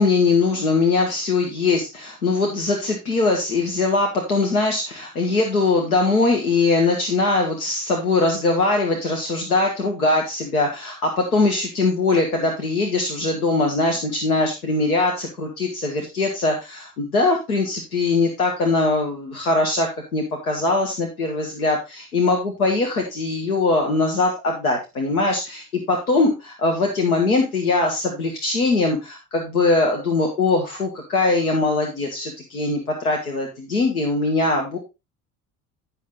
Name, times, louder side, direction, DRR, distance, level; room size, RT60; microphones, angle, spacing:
voice 1, 0.0-34.8, left 3 dB, 85° left, 2 dB, 1.6 m, -21 dB
9.5 x 6.6 x 3.8 m, 0.25 s
hypercardioid pair, 65°, 43 cm